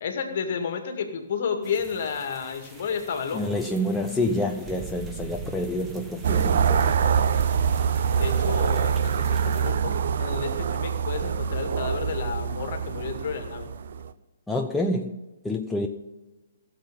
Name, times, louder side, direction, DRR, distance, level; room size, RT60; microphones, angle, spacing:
voice 1, 0.0-3.4 8.2-13.7, left 6 dB, 45° left, 6 dB, 2.1 m, -31 dB
sound 1, 1.6-9.7, right 4 dB, 10° right, 1.4 m, -43 dB
voice 2, 3.3-7.1 14.5-15.2 15.4-15.9, left 1 dB, 5° left, 2 dB, 0.7 m, -28 dB
sound 2, 6.2-14.1, right 7 dB, 55° right, 0.6 m, -25 dB
16.5 x 7.5 x 5.4 m, 1.1 s
figure-of-eight pair, 130°, 0 cm